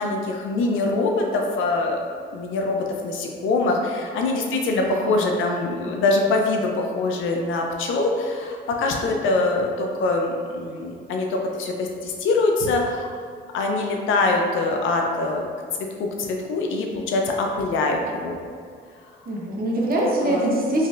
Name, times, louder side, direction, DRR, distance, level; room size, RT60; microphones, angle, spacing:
voice 1, 0.0-2.0 2.3-13.1 13.5-15.4 15.8-18.4 20.2-20.5, left 3 dB, 80° left, 1 dB, 0.5 m, -23 dB
voice 2, 4.8-5.3 19.3-20.9, right 1 dB, 45° right, -3 dB, 0.8 m, -24 dB
4.0 x 3.2 x 2.5 m, 2.1 s
cardioid pair, 90°, 20 cm